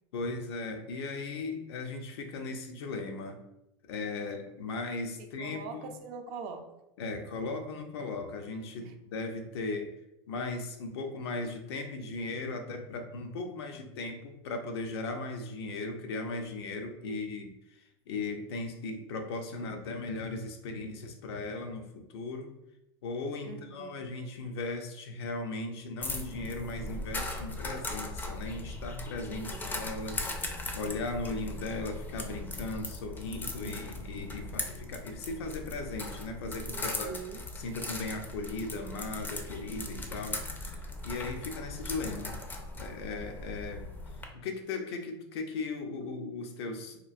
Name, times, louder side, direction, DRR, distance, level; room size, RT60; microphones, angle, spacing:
voice 1, 0.1-3.4 3.9-6.0 7.0-9.9 10.3-22.5 23.0-37.1 37.6-40.4 41.0-42.4 42.8-43.9 44.3-47.0, left 3 dB, 90° left, 4 dB, 0.5 m, -37 dB
voice 2, 5.4-6.7 8.8-8.9 17.0-17.3 23.4-24.0 29.3-29.6 36.7-37.4 41.9-42.2, right 5 dB, 55° right, 5 dB, 0.5 m, -43 dB
sound 1, 26.0-44.2, left 2 dB, 15° left, 0.4 m, -39 dB
2.9 x 2.4 x 2.4 m, 0.87 s
supercardioid pair, 130°, 13 cm